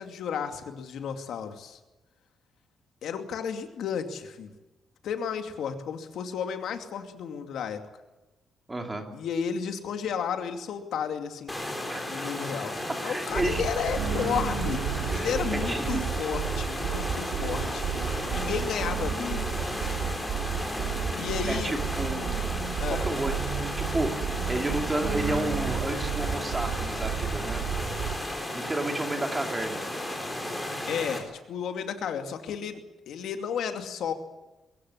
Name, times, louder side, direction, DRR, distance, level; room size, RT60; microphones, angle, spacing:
voice 1, 0.0-1.8 3.0-4.5 5.0-7.8 9.1-11.6 12.1-19.7 21.2-21.8 22.8-23.1 30.9-32.8 33.1-34.1, left 7 dB, 70° left, 6 dB, 2.5 m, -33 dB
voice 2, 8.7-9.0 11.9-12.0 13.0-13.6 14.9-16.0 21.5-22.5 22.9-27.6 28.5-29.8, right 1 dB, 15° right, 4 dB, 2.8 m, -32 dB
sound 1, 11.5-31.2, left 1 dB, 10° left, 4.0 m, -34 dB
sound 2, 13.3-28.1, right 7 dB, 75° right, 3.4 m, -32 dB
23.5 x 15.5 x 9.9 m, 1.1 s
cardioid pair, 175°, 0 cm